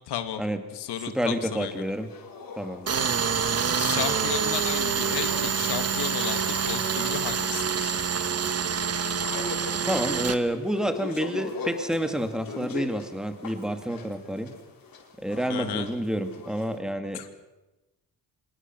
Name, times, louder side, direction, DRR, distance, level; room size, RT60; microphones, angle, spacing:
voice 1, 0.1-0.4 0.7-1.8 3.7-8.0 15.5-15.9 17.1-17.3, left 10 dB, 90° left, 9 dB, 2.2 m, -33 dB
sound 1, 0.8-16.8, left 4 dB, 60° left, 4.9 m, -42 dB
voice 2, 1.1-2.1 2.6-2.9 9.8-14.5 15.2-17.2, equal, ahead, 7 dB, 2.5 m, -29 dB
Tools, 2.9-10.4, right 6 dB, 40° right, 1.6 m, -26 dB
25.0 x 21.5 x 6.3 m, 1.1 s
cardioid pair, 105°, 39 cm